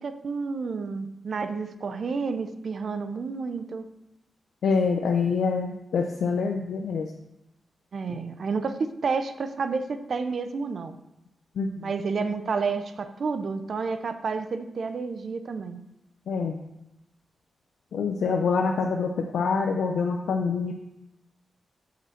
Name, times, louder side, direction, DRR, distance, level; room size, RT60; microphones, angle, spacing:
voice 1, 0.0-3.9 7.9-10.9 11.8-15.8, right 4 dB, 70° right, 10 dB, 0.6 m, -30 dB
voice 2, 4.6-7.1 8.1-8.2 11.6-11.9 16.3-16.6 17.9-20.7, left 5 dB, 85° left, 2 dB, 0.6 m, -26 dB
6.0 x 5.0 x 6.6 m, 0.89 s
cardioid pair, 50°, 0 cm